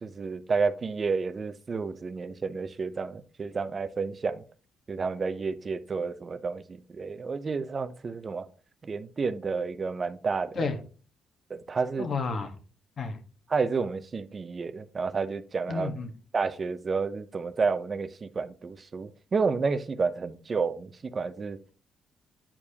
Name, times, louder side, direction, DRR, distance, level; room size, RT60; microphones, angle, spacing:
voice 1, 0.0-4.4 4.9-6.6 6.9-8.5 8.8-10.6 11.5-12.1 13.5-15.9 16.3-21.6, right 4 dB, 40° right, 12 dB, 0.6 m, -30 dB
voice 2, 12.0-12.5 13.0-13.2 15.7-16.1, left 4 dB, 55° left, 6 dB, 1.3 m, -31 dB
8.6 x 4.7 x 2.8 m, 0.38 s
cardioid pair, 75°, 0 cm